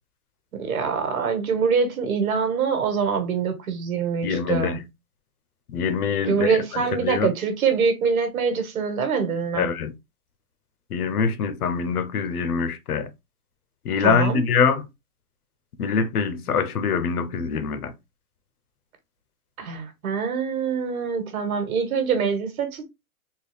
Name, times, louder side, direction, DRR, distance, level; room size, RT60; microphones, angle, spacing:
voice 1, 0.5-4.8 6.3-9.7 14.0-14.4 19.6-22.8, right 6 dB, 70° right, 1.5 m, -24 dB
voice 2, 4.2-4.8 5.7-7.3 9.5-9.9 10.9-13.1 13.8-14.9 15.8-17.9, left 6 dB, 85° left, 0.8 m, -24 dB
3.8 x 2.3 x 3.2 m
hypercardioid pair, 165°, 44 cm